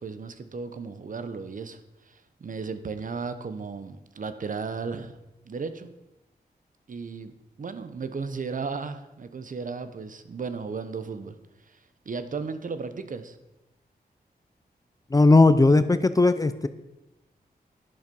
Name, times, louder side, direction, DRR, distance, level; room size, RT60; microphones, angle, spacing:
voice 1, 0.0-5.2 5.4-5.9 6.9-11.4 11.7-11.8 12.0-13.4, right 5 dB, 55° right, 11 dB, 0.9 m, -35 dB
voice 2, 15.1-16.7, left 2 dB, 20° left, 12 dB, 0.5 m, -18 dB
11.0 x 11.0 x 5.4 m, 0.93 s
wide cardioid pair, 160°, 16 cm